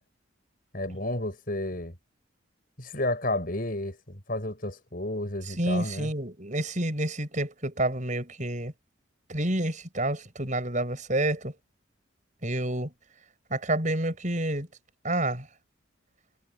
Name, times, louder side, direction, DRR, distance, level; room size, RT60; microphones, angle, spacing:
voice 1, 0.7-1.9 2.8-6.1, left 1 dB, 45° left, 7.2 m, -31 dB
voice 2, 5.5-8.7 9.3-11.5 12.4-12.9 13.5-14.7 15.0-15.5, right 1 dB, 40° right, 7.7 m, -29 dB
head